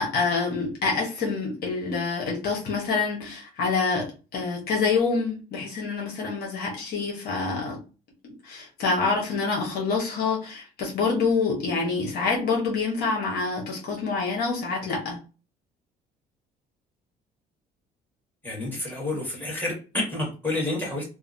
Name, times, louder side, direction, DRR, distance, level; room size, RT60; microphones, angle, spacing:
voice 1, 0.0-7.8 8.2-15.2, left 4 dB, 65° left, 0 dB, 0.9 m, -26 dB
voice 2, 18.4-21.0, left 2 dB, 10° left, -3 dB, 1.5 m, -29 dB
2.8 x 2.1 x 2.5 m, 0.33 s
cardioid pair, 110°, 17 cm